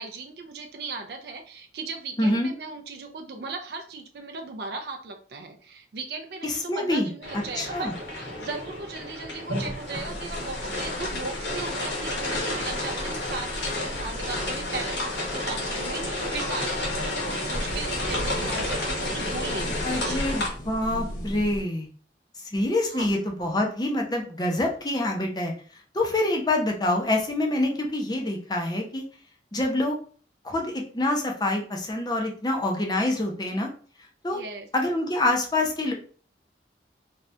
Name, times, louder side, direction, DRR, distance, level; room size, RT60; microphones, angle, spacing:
voice 1, 0.0-20.2 22.9-23.1 34.3-34.7, right 3 dB, 60° right, 4 dB, 0.4 m, -37 dB
voice 2, 2.2-2.5 6.4-7.1 7.6-7.9 19.8-21.9 22.5-25.5 25.9-29.0 29.5-30.0 30.4-33.7 34.2-34.4 34.7-35.9, left 1 dB, 25° left, 1 dB, 0.6 m, -26 dB
sound 1, 7.2-20.5, left 1 dB, 85° left, 1.1 m, -31 dB
sound 2, 9.9-21.6, equal, 40° left, 1.0 m, -38 dB
2.7 x 2.4 x 3.2 m, 0.42 s
head